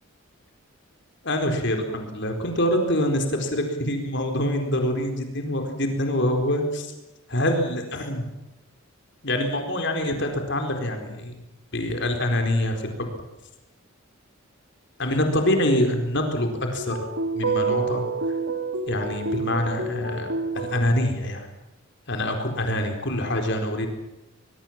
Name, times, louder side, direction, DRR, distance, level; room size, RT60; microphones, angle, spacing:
voice 1, 1.2-6.9 7.3-8.3 9.2-11.4 11.7-13.1 15.0-17.1 17.3-18.0 18.9-21.4 22.1-23.9, left 1 dB, 55° left, 4 dB, 4.3 m, -25 dB
sound 1, 16.8-20.9, right 3 dB, 70° right, 2.7 m, -28 dB
23.5 x 23.0 x 7.4 m, 0.95 s
head